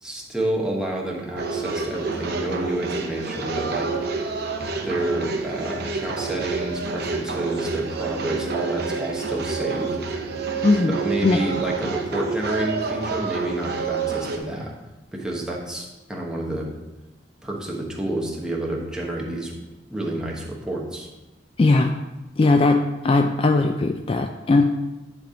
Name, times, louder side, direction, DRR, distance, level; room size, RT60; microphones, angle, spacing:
voice 1, 0.0-3.9 4.7-10.0 11.0-14.7 15.1-16.7 17.4-19.5 19.9-21.1, right 1 dB, 5° right, -3 dB, 1.2 m, -29 dB
sound 1, 1.4-14.4, right 4 dB, 60° right, 0.9 m, -28 dB
voice 2, 10.6-11.0 11.2-11.4 21.6-21.9 22.4-24.6, left 3 dB, 30° left, 5 dB, 0.3 m, -19 dB
10.5 x 3.5 x 5.1 m, 1.1 s
head